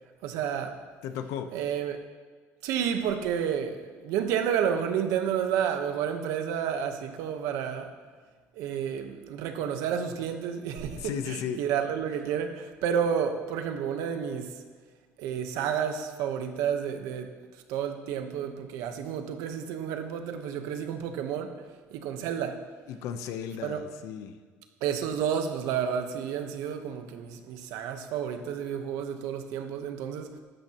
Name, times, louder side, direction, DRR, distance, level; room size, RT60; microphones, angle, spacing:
voice 1, 0.2-0.8 1.5-2.0 2.6-7.9 8.6-14.6 15.2-17.3 17.7-21.5 21.9-22.6 23.6-23.8 24.8-30.3, right 8 dB, 85° right, 6 dB, 1.2 m, -30 dB
voice 2, 1.0-1.5 11.0-11.6 22.9-24.4, left 8 dB, 75° left, 9 dB, 0.9 m, -35 dB
14.5 x 12.0 x 3.1 m, 1.5 s
cardioid pair, 165°, 5 cm